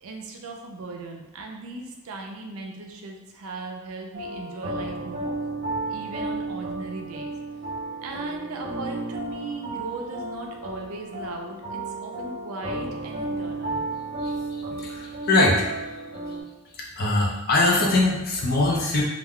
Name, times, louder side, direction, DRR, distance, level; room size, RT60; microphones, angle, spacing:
voice 1, 0.0-5.3 5.9-7.3 8.0-13.9, right 3 dB, 65° right, 2 dB, 0.4 m, -37 dB
sound 1, 4.1-16.4, right 2 dB, 35° right, 0.9 m, -33 dB
voice 2, 14.7-15.7 16.8-19.0, left 2 dB, 45° left, -2 dB, 0.6 m, -22 dB
2.4 x 2.2 x 3.6 m, 1.0 s
head